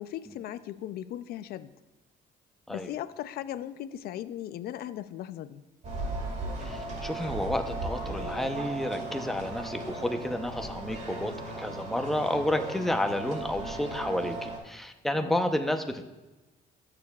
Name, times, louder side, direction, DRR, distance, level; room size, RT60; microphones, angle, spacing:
voice 1, 0.0-1.7 2.7-5.6 15.1-15.4, left 12 dB, 65° left, 14 dB, 0.4 m, -38 dB
sound 1, 5.8-14.6, right 2 dB, 45° right, 2.7 m, -36 dB
voice 2, 6.6-16.0, left 1 dB, ahead, 5 dB, 0.7 m, -31 dB
19.5 x 6.7 x 2.3 m, 1.1 s
cardioid pair, 110°, 17 cm